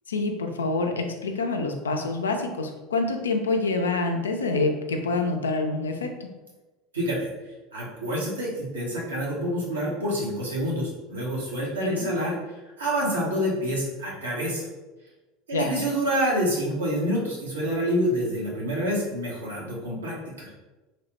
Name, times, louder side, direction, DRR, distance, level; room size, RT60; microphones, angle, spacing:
voice 1, 0.1-6.3 11.8-12.1 15.5-15.7, left 3 dB, 85° left, 4 dB, 0.3 m, -27 dB
voice 2, 6.9-7.3 7.7-12.3 12.8-14.7 15.5-20.5, equal, 85° right, -5 dB, 0.8 m, -27 dB
2.9 x 2.0 x 2.9 m, 1.1 s
hypercardioid pair, 75°, 0 cm